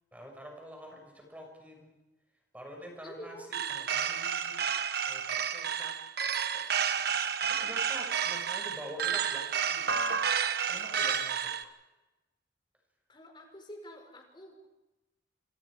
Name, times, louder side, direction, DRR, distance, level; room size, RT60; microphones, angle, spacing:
voice 1, 0.1-1.9 2.5-4.6 5.1-6.0 6.5-6.6 7.4-9.9 10.7-11.5, equal, 10° right, 2 dB, 6.4 m, -46 dB
voice 2, 2.9-3.5 10.9-11.1 13.1-14.7, equal, 25° left, 4 dB, 4.9 m, -48 dB
sound 1, 3.5-11.6, right 7 dB, 60° right, 1.3 m, -31 dB
28.0 x 26.0 x 5.0 m, 1.1 s
head